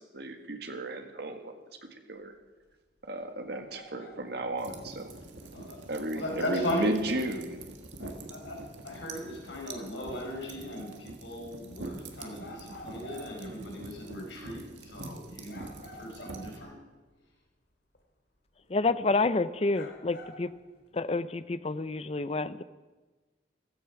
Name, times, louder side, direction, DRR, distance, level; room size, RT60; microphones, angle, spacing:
voice 1, 0.0-1.5 1.9-2.3 3.0-5.1 5.9-7.6, right 1 dB, 60° right, 6 dB, 1.7 m, -34 dB
sound 1, 2.6-2.7 3.2-3.3 3.7-4.5 4.9-5.0 5.4-5.5 6.0-6.1 6.6-6.7 7.3-7.4 7.9-8.0 8.4-9.1 9.5-11.0 11.4-11.5 12.1-12.2 12.4-13.5 14.1-14.2 14.8-14.9 15.5-16.7 17.2-17.3 17.9-18.0 18.6-18.7 19.4-19.5 19.7-20.9, equal, 65° left, 2.6 m, -49 dB
sound 2, 4.6-16.6, right 2 dB, 80° right, 1.7 m, -45 dB
voice 2, 6.1-6.9 8.0-15.6 15.9-16.8, left 1 dB, 85° left, -1 dB, 4.9 m, -37 dB
voice 3, 18.7-20.5 20.9-22.6, left 3 dB, 35° left, 14 dB, 0.6 m, -29 dB
15.5 x 14.0 x 5.9 m, 1.2 s
head